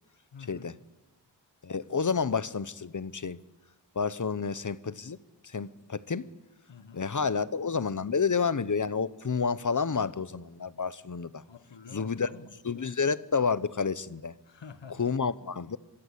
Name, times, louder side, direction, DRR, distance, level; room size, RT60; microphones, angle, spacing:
voice 1, 0.3-0.7 6.7-7.1 11.4-13.0 14.4-15.3, left 5 dB, 75° left, 1.7 m, -49 dB
voice 2, 1.6-3.4 3.9-5.2 5.4-6.3 6.9-11.4 11.9-12.3 12.6-14.3 15.0-15.8, left 5 dB, 45° left, 1.0 m, -30 dB
25.5 x 24.5 x 8.4 m
wide cardioid pair, 95°, 44 cm